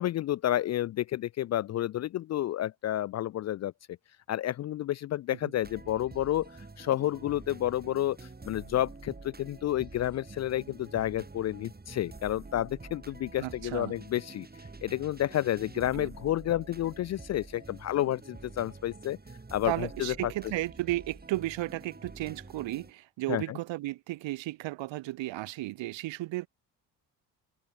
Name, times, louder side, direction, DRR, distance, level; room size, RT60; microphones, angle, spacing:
voice 1, 0.0-3.7 4.3-6.5 6.8-14.5 14.8-19.2 19.5-20.3 23.3-23.6, left 13 dB, 35° left, 0.4 m, -30 dB
sound 1, 5.6-22.9, right 3 dB, 20° right, 3.2 m, -48 dB
voice 2, 13.4-13.9 15.9-16.1 19.6-26.5, right 17 dB, 65° right, 2.4 m, -34 dB
hypercardioid pair, 45°, 48 cm